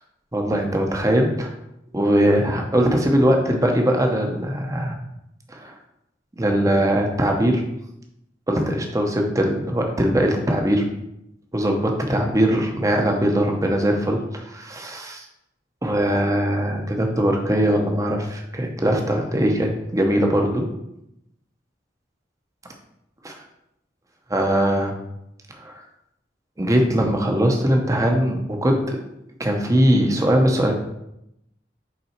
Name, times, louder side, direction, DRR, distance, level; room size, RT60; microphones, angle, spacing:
voice 1, 0.3-1.5 1.9-5.0 5.5-5.7 6.4-7.6 8.5-10.8 11.5-15.2 15.8-20.6 23.2-23.3 24.3-24.9 25.6-25.7 26.6-29.0 29.4-30.7, equal, 20° right, 2 dB, 0.8 m, -21 dB
5.8 x 3.7 x 4.4 m, 0.82 s
head